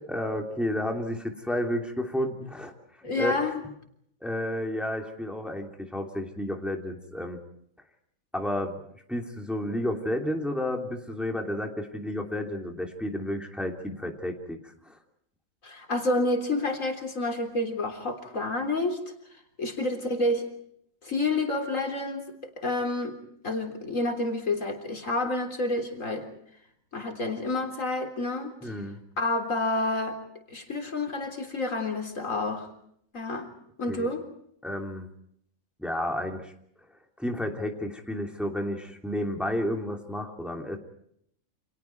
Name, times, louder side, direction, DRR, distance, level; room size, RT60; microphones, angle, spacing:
voice 1, 0.0-3.4 4.2-7.4 8.3-8.8 9.1-15.0 28.6-29.0 33.9-34.1 34.6-35.1 35.8-36.5 37.2-40.8, left 1 dB, ahead, 2 dB, 2.9 m, -31 dB
voice 2, 3.0-3.6 15.6-19.0 19.6-20.5 21.0-23.2 23.4-26.3 26.9-28.7 29.2-30.2 30.5-32.7 33.1-33.5 33.8-34.2, left 2 dB, 70° left, 4 dB, 4.0 m, -29 dB
30.0 x 28.0 x 4.6 m, 0.70 s
omnidirectional pair, 1.4 m